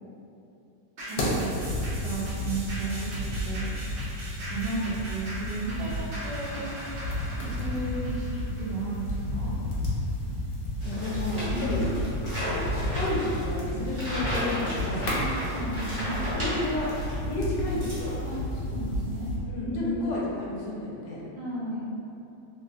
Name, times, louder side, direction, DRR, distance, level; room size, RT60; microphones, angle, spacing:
sound 1, 1.0-9.7 10.1-10.2, equal, 65° right, 0.5 m, -40 dB
voice 1, 1.1-1.6 1.9-3.7 4.5-6.7 7.4-9.6 11.5-12.0 15.2-16.3 18.2-19.9 21.4-21.9, right 2 dB, 85° right, -7 dB, 1.3 m, -34 dB
sound 2, 1.2-19.4, left 1 dB, 65° left, 1.0 m, -32 dB
voice 2, 10.8-11.9 12.4-15.1 16.3-16.9 17.3-18.1 19.4-21.2, left 2 dB, 90° left, -4 dB, 1.3 m, -32 dB
sound 3, 10.8-17.2 17.5-18.5, equal, 35° right, 1.0 m, -34 dB
3.1 x 2.8 x 2.4 m, 2.8 s
omnidirectional pair, 1.9 m